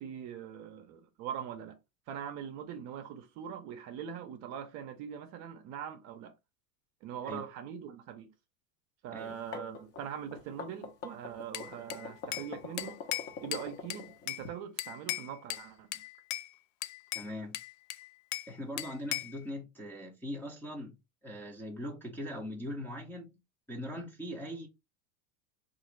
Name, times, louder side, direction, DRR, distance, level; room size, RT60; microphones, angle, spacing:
voice 1, 0.0-1.8 2.1-6.3 7.0-8.3 9.0-13.0 13.4-16.0, right 8 dB, 40° right, 0.6 m, -42 dB
sound 1, 9.2-14.5, left 5 dB, 35° left, 0.8 m, -44 dB
Bell / Glass, 11.5-12.5 12.8-14.5 14.8-15.7 15.9-16.5 16.8-18.5 18.8-19.4, left 14 dB, 65° left, 0.5 m, -38 dB
voice 2, 17.1-17.6 18.5-21.0 21.2-23.3 23.7-24.7, equal, 5° left, 0.6 m, -40 dB
3.8 x 2.5 x 3.0 m
supercardioid pair, 140°, 42 cm